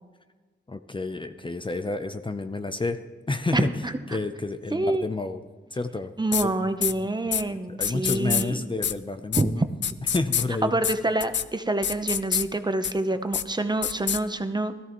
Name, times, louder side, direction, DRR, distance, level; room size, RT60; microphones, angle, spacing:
voice 1, 0.7-3.0 3.3-3.7 4.1-5.4 5.7-6.1 6.4-6.5 7.4-9.7 10.1-10.8, left 3 dB, 25° left, 9 dB, 0.6 m, -30 dB
voice 2, 3.5-3.9 4.7-5.1 6.2-8.6 9.4-9.5 10.6-14.7, right 2 dB, 20° right, 8 dB, 0.8 m, -26 dB
sound 1, 6.3-6.4 6.8-6.9 7.3-7.4 7.8-8.4 8.8-8.9 9.3-9.4 9.8-10.4 10.8-10.9 11.2-11.4 11.8-12.4 12.8-12.9 13.3-13.4 13.8-14.2, left 8 dB, 65° left, 0.5 m, -25 dB
17.0 x 14.0 x 3.1 m, 1.3 s
wide cardioid pair, 80°, 20 cm